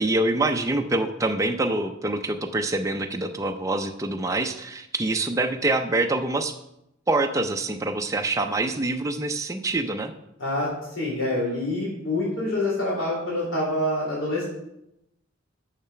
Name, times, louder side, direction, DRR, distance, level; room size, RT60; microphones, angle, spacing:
voice 1, 0.0-6.5 7.1-10.1, right 2 dB, 15° right, 5 dB, 0.5 m, -25 dB
voice 2, 11.0-14.4, left 1 dB, 65° left, -5 dB, 3.8 m, -26 dB
7.0 x 6.6 x 5.7 m, 0.83 s
head